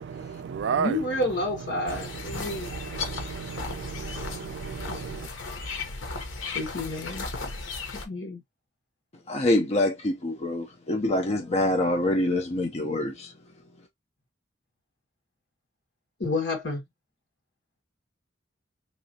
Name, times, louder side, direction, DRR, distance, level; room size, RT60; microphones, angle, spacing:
voice 1, 0.0-1.0 1.8-5.3, right 6 dB, 65° right, 0.3 m, -34 dB
voice 2, 0.8-2.7 6.5-7.3 8.0-8.4 16.2-16.8, left 2 dB, 65° left, 1.6 m, -29 dB
sound 1, 1.9-8.1, left 3 dB, 85° left, 0.9 m, -35 dB
voice 3, 9.3-13.3, left 1 dB, 35° left, 0.5 m, -25 dB
3.1 x 3.0 x 2.7 m
head